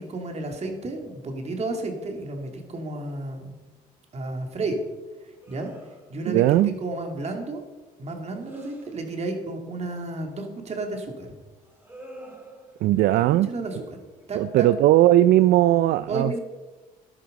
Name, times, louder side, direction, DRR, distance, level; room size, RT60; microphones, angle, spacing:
voice 1, 0.0-3.6 4.1-4.8 5.5-5.7 6.1-7.6 8.0-11.3 13.5-14.0 14.3-14.7 16.1-16.4, right 2 dB, 40° right, 3 dB, 2.9 m, -32 dB
sound 1, 5.4-6.3 6.9-7.4 7.8-9.1 11.6-14.2, right 1 dB, 15° right, 3.4 m, -48 dB
voice 2, 6.3-6.7 12.8-13.5 14.4-16.4, right 14 dB, 75° right, 15 dB, 0.4 m, -18 dB
12.5 x 11.5 x 5.3 m, 1.2 s
cardioid pair, 90°, 16 cm